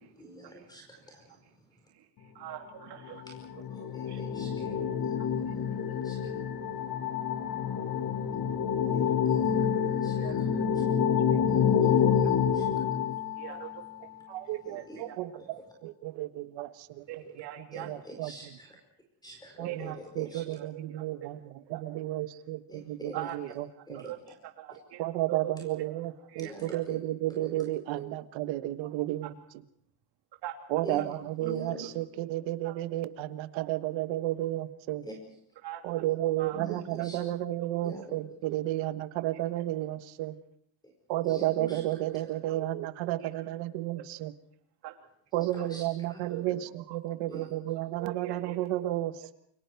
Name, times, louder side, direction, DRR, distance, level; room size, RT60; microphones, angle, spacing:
voice 1, 0.0-1.4 3.2-3.3 3.7-5.2 5.4-6.2 8.9-10.5 10.7-10.8 11.5-12.8 14.6-15.0 15.4-15.7 17.7-18.8 19.2-20.4 22.7-23.3 23.9-24.1 26.4-26.8 27.4-27.6 30.8-31.0 31.4-31.9 35.0-35.2 36.5-37.2 37.8-38.2 41.2-41.8 42.1-42.3 45.6-46.6 47.3-47.4, right 1 dB, 10° left, 3 dB, 4.9 m, -46 dB
voice 2, 2.3-3.2 4.1-4.2 10.2-10.4 11.3-11.4 13.4-13.7 14.7-15.2 17.1-17.9 19.6-20.0 20.3-21.3 21.7-21.8 23.1-24.2 24.6-25.5 26.3-26.8 30.4-30.5 35.6-35.8 36.4-36.6 43.2-43.3 44.8-44.9 45.6-45.7 46.9-47.0 48.0-48.6, right 13 dB, 60° right, 2 dB, 3.1 m, -42 dB
sound 1, 3.0-13.8, left 7 dB, 50° left, 2.2 m, -28 dB
voice 3, 14.3-17.0 17.6-18.3 19.6-24.0 25.0-29.4 30.7-35.1 35.8-40.3 41.1-44.3 45.3-49.3, right 15 dB, 85° right, 11 dB, 1.4 m, -32 dB
29.5 x 23.5 x 4.6 m, 0.68 s
cardioid pair, 140°, 45 cm